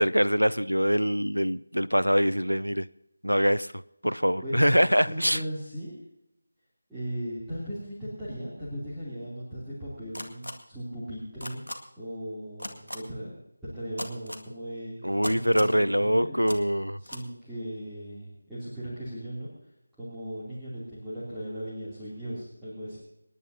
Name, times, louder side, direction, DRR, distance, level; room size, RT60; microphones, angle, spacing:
voice 1, 0.0-2.9 3.2-3.7 4.0-5.4 15.0-17.0, equal, 90° right, 0.5 m, -24 dB
voice 2, 4.4-4.8 5.1-6.0 6.9-11.6 12.0-13.3 13.6-16.4 17.0-19.5 20.0-23.0, equal, ahead, 2.9 m, -37 dB
sound 1, 10.1-10.5 11.4-11.7 12.6-13.0 14.0-14.4 15.2-15.7 16.5-16.6 17.0-17.2, left 1 dB, 80° left, 2.0 m, -36 dB
27.5 x 11.0 x 2.8 m
figure-of-eight pair, 165°, 0 cm